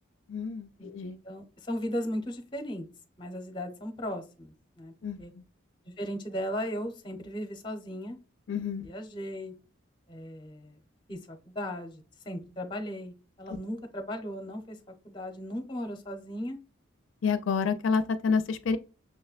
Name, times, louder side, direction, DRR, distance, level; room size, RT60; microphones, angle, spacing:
voice 1, 0.3-1.2 5.0-5.2 8.5-8.9 17.2-18.8, left 5 dB, 80° left, 0.4 m, -28 dB
voice 2, 1.2-2.8 3.2-4.9 5.2-5.3 5.9-8.2 8.8-9.5 10.1-10.8 11.1-14.8 15.0-16.6, equal, 25° left, 0.6 m, -36 dB
6.1 x 2.1 x 2.3 m
head